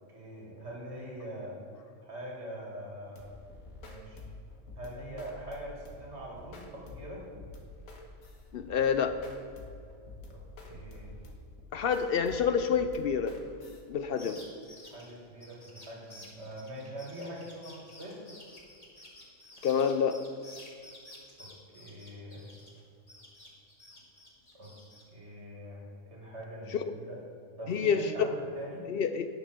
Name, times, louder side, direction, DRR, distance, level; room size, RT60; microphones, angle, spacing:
voice 1, 0.1-1.6 2.0-3.3 3.8-4.2 4.8-7.2 10.3-11.1 14.2-14.3 14.9-18.2 21.4-21.5 21.7-22.5 24.5-24.7 25.1-27.2 27.6-28.8, right 1 dB, 55° right, -3 dB, 2.5 m, -43 dB
sound 1, 3.2-13.8, left 2 dB, 90° left, 1.6 m, -48 dB
voice 2, 8.5-9.2 11.7-13.4 13.9-14.4 19.6-20.2 27.7-28.0 28.9-29.3, left 7 dB, 65° left, 9 dB, 0.6 m, -27 dB
sound 2, 14.0-22.8 23.1-25.0, left 1 dB, 30° left, 1.8 m, -52 dB
9.8 x 6.6 x 6.0 m, 2.3 s
omnidirectional pair, 1.4 m